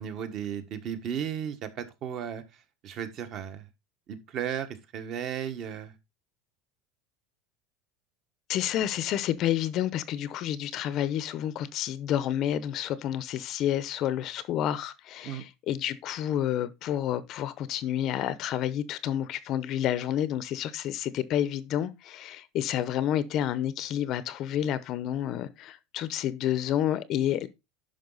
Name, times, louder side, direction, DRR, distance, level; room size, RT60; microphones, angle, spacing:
voice 1, 0.0-2.4 2.8-3.6 4.1-4.7 4.9-5.9 15.2-15.4, right 9 dB, 40° right, 1.4 m, -34 dB
voice 2, 8.5-27.5, left 11 dB, 40° left, 0.7 m, -29 dB
10.5 x 5.9 x 4.0 m
supercardioid pair, 160°, 0 cm